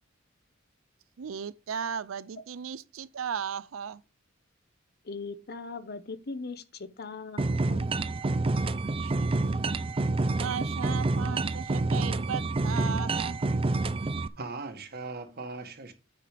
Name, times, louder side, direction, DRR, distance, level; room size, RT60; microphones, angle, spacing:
voice 1, 1.2-4.0 8.9-9.3 10.4-13.4, right 7 dB, 85° right, 0.5 m, -36 dB
voice 2, 5.0-7.8, left 4 dB, 50° left, 0.8 m, -40 dB
sound 1, 7.4-14.3, right 2 dB, 30° right, 0.5 m, -28 dB
voice 3, 14.4-15.9, right 3 dB, 50° right, 1.4 m, -39 dB
9.1 x 4.8 x 5.1 m
head